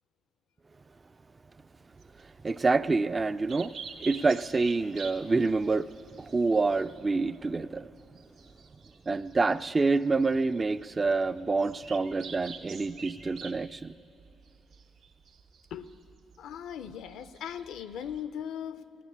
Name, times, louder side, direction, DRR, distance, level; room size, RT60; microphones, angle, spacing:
sound 1, 1.9-18.2, right 5 dB, 80° right, 1.2 m, -49 dB
voice 1, 2.4-3.7 4.0-5.9 6.3-7.9 9.1-13.9, right 3 dB, 25° right, 0.3 m, -27 dB
voice 2, 16.4-19.0, left 9 dB, 80° left, 0.5 m, -39 dB
15.5 x 9.3 x 9.8 m
cardioid pair, 90°, 0 cm